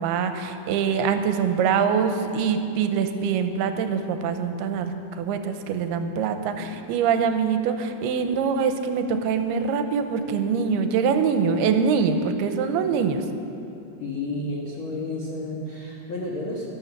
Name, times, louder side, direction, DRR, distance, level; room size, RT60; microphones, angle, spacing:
voice 1, 0.0-13.2, right 6 dB, 85° right, 8 dB, 2.7 m, -24 dB
voice 2, 14.0-16.7, left 2 dB, 60° left, -3 dB, 1.3 m, -31 dB
12.5 x 12.5 x 7.2 m, 2.8 s
omnidirectional pair, 4.5 m